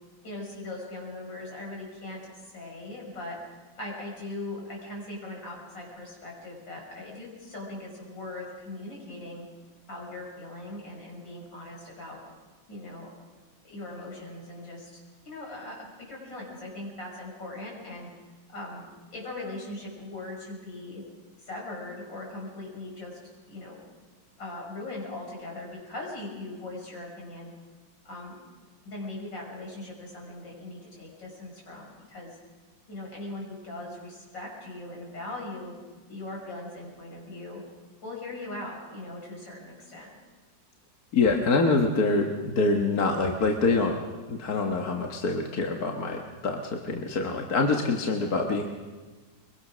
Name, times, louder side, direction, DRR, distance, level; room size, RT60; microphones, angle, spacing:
voice 1, 0.2-2.2 2.5-9.4 9.9-12.2 12.7-13.1 13.7-18.1 18.5-18.9 19.1-21.0 21.4-23.2 23.5-23.8 24.4-27.5 28.0-28.4 28.9-32.4 32.9-35.7 36.1-37.6 38.0-40.2, left 2 dB, 75° left, -2 dB, 7.0 m, -40 dB
voice 2, 41.1-44.0 44.3-48.6, left 3 dB, 55° left, 2 dB, 1.9 m, -25 dB
23.5 x 22.5 x 6.3 m, 1.3 s
omnidirectional pair, 2.0 m